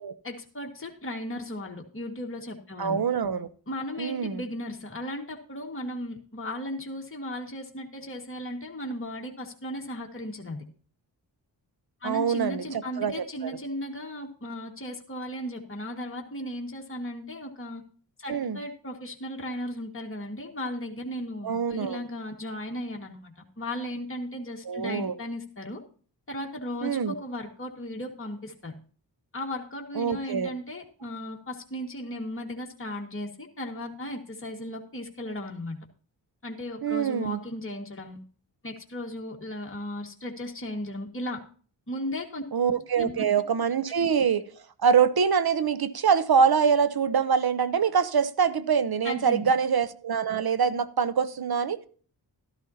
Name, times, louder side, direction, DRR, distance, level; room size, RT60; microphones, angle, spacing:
voice 1, 0.2-3.0 3.7-10.6 12.0-17.8 18.2-25.8 26.3-28.7 29.3-35.8 36.4-38.2 38.6-41.4 41.9-42.4 43.0-43.3 49.0-49.5, left 1 dB, 30° left, 1.8 m, -36 dB
voice 2, 2.8-3.5 4.0-4.4 12.0-13.5 18.3-18.6 21.4-22.0 24.7-25.2 26.8-27.1 30.0-30.5 36.8-37.4 42.5-44.4 44.8-51.8, right 6 dB, 55° right, 0.8 m, -24 dB
13.0 x 11.0 x 2.8 m
cardioid pair, 45°, 44 cm